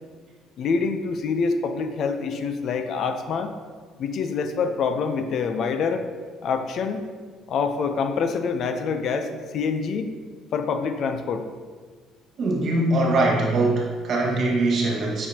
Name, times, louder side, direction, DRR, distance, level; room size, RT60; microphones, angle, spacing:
voice 1, 0.6-3.5 4.0-6.1 6.4-7.0 7.5-10.1 10.5-11.5, left 5 dB, 55° left, 7 dB, 0.6 m, -26 dB
voice 2, 12.4-15.3, right 2 dB, 50° right, -1 dB, 1.7 m, -22 dB
8.5 x 6.5 x 2.9 m, 1.5 s
cardioid pair, 125°, 0 cm